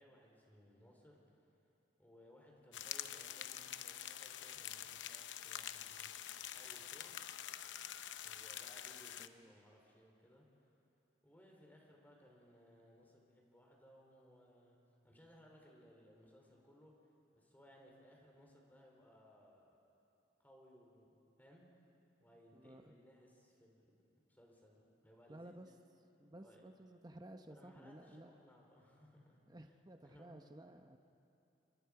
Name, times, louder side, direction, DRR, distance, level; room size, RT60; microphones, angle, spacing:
voice 1, 0.0-1.4 2.0-6.2 6.5-7.3 8.2-10.4 11.2-16.9 17.3-19.8 20.4-21.6 22.2-23.9 24.3-25.5 26.4-26.6 27.5-29.4 30.0-30.4, equal, 10° left, -1 dB, 3.3 m, -63 dB
sound 1, 2.7-9.3, left 10 dB, 90° left, 0.7 m, -47 dB
voice 2, 9.2-9.5 22.5-22.9 25.3-25.7 26.2-28.3 29.5-31.0, right 1 dB, 20° right, 6 dB, 0.8 m, -55 dB
29.0 x 24.5 x 4.8 m, 2.8 s
head